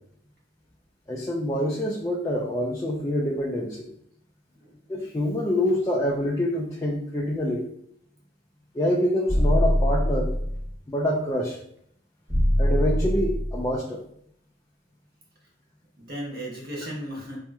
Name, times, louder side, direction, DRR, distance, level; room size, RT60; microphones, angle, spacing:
voice 1, 1.1-3.9 4.9-7.7 8.7-10.3 10.9-11.6 12.6-14.0, left 1 dB, 15° left, -4 dB, 0.4 m, -26 dB
voice 2, 4.5-5.1 16.0-17.4, equal, 55° right, -3 dB, 1.2 m, -36 dB
sound 1, 9.3-10.7 12.3-13.7, equal, 10° right, 1.1 m, -23 dB
4.1 x 2.9 x 2.3 m, 0.70 s
head